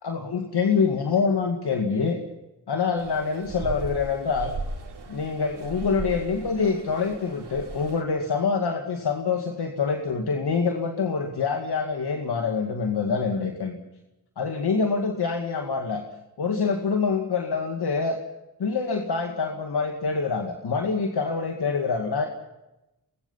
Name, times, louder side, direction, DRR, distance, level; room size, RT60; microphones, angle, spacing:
voice 1, 0.0-2.2 2.7-4.6 5.1-13.8 14.4-16.0 16.4-18.2 18.6-22.3, left 5 dB, 75° left, 3 dB, 2.2 m, -25 dB
sound 1, 3.0-8.0, right 4 dB, 80° right, 3.5 m, -37 dB
24.5 x 21.5 x 5.7 m, 0.96 s
cardioid pair, 50°, 40 cm